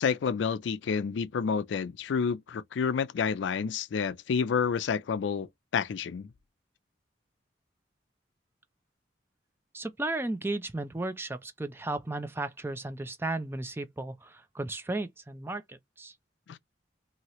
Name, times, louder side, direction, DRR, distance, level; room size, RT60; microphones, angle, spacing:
voice 1, 0.0-5.5 5.7-6.3 16.5-16.6, left 6 dB, 85° left, 0.4 m, -29 dB
voice 2, 9.7-16.1, right 2 dB, 15° right, 0.4 m, -34 dB
2.9 x 2.7 x 2.9 m
head